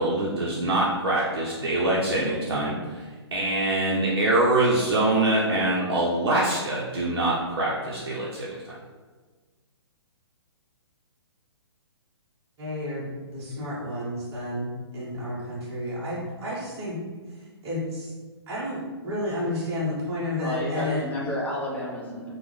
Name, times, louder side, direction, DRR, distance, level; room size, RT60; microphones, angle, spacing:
voice 1, 0.0-8.8, right 2 dB, 60° right, -5 dB, 0.6 m, -24 dB
voice 2, 12.6-13.1 13.3-17.0 17.3-18.1 18.5-21.0, left 1 dB, 20° right, -9 dB, 0.8 m, -31 dB
voice 3, 20.4-22.3, left 1 dB, 10° left, -6 dB, 0.7 m, -31 dB
3.4 x 2.0 x 3.1 m, 1.4 s
figure-of-eight pair, 125°, 14 cm